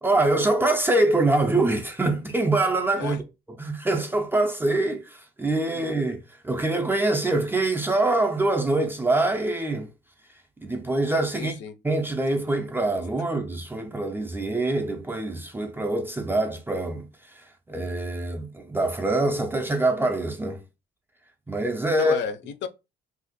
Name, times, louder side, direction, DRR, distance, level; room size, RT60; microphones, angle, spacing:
voice 1, 0.0-3.2 3.6-9.9 10.6-11.6 11.8-17.1 17.7-20.6 21.5-22.2, right 2 dB, 10° right, 0.3 m, -24 dB
voice 2, 11.3-11.8 21.8-22.7, left 6 dB, 65° left, 0.5 m, -33 dB
2.8 x 2.5 x 3.8 m
cardioid pair, 170°, 21 cm